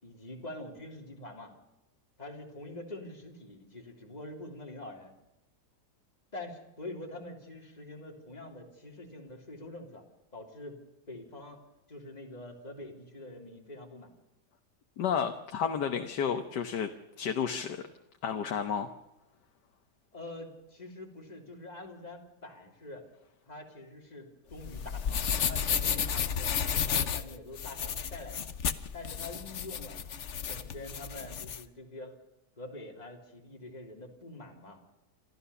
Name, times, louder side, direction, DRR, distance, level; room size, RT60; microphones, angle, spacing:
voice 1, 0.0-1.5 2.2-5.1 6.3-10.0 10.3-10.8 11.1-11.6 11.9-14.1 20.1-23.1 23.5-28.5 28.9-30.0 30.5-32.1 32.6-34.8, left 2 dB, 25° left, 1 dB, 3.4 m, -45 dB
voice 2, 15.0-16.9 17.2-17.8 18.2-18.9, left 7 dB, 85° left, 5 dB, 1.7 m, -31 dB
sound 1, 24.5-31.6, left 7 dB, 50° left, 1.1 m, -32 dB
27.0 x 14.0 x 7.0 m, 0.95 s
omnidirectional pair, 1.8 m